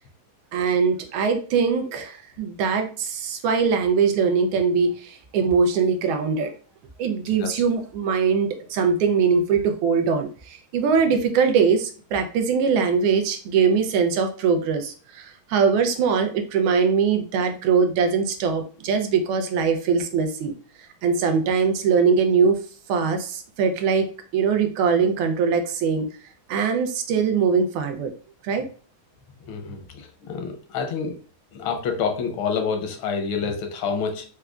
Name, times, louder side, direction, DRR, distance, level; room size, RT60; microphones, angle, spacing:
voice 1, 0.5-6.5 7.0-20.5 20.8-22.6 22.9-26.1 26.5-28.1 28.4-28.7, right 5 dB, 80° right, 6 dB, 1.4 m, -22 dB
voice 2, 29.5-31.1 31.5-34.2, left 5 dB, 80° left, 4 dB, 1.5 m, -28 dB
4.7 x 2.2 x 2.3 m, 0.41 s
omnidirectional pair, 2.3 m